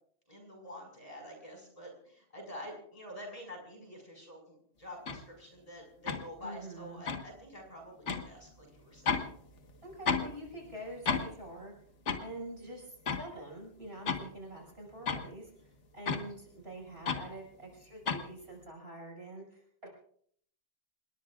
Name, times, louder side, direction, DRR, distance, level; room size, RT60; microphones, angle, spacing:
voice 1, 0.3-9.3, equal, 30° left, 2 dB, 5.6 m, -48 dB
sound 1, 5.1-5.2 6.1-6.2 7.1-7.3 8.1-8.3 9.1-9.3 9.6-10.3 10.6-10.7 11.0-11.3 12.1-12.2 13.1-13.2 13.8-14.2 15.1-15.2 16.1-16.2 17.1-17.3 18.1-18.2, left 5 dB, 80° left, 1.8 m, -32 dB
voice 2, 6.4-7.0 9.8-11.7 12.2-19.9, right 1 dB, 60° right, -1 dB, 6.2 m, -46 dB
27.5 x 21.0 x 2.4 m, 0.63 s
omnidirectional pair, 1.2 m